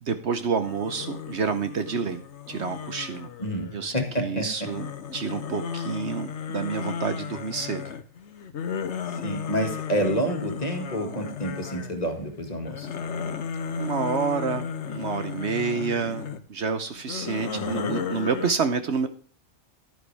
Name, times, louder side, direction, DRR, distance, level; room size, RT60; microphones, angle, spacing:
voice 1, 0.0-3.3 3.7-4.9 5.1-7.9 13.8-19.1, right 5 dB, 60° right, 10 dB, 1.1 m, -29 dB
sound 1, 0.6-4.0 4.6-12.1 12.5-16.4 17.0-18.5, left 7 dB, 60° left, 1.1 m, -34 dB
voice 2, 3.4-4.5 9.1-12.9 17.5-18.0, equal, 30° left, 4 dB, 2.1 m, -29 dB
11.0 x 9.6 x 3.4 m, 0.43 s
omnidirectional pair, 1.4 m